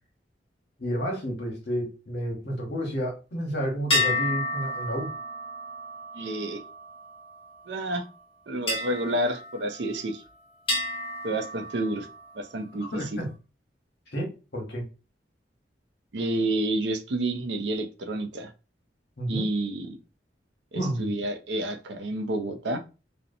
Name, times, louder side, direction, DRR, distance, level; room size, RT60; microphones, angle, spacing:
voice 1, 0.8-5.1 12.9-13.3 14.1-14.9 19.2-19.5 20.7-21.1, equal, 65° left, 0 dB, 1.0 m, -31 dB
sound 1, 3.9-7.6 8.7-10.2 10.7-12.4, left 2 dB, 30° left, 0.8 m, -31 dB
voice 2, 6.1-6.6 7.7-8.0 8.5-10.2 11.2-12.1 12.4-12.9 16.1-18.5 19.3-20.0 20.7-22.8, right 1 dB, 75° right, 7 dB, 0.5 m, -29 dB
2.7 x 2.0 x 2.6 m, 0.31 s
head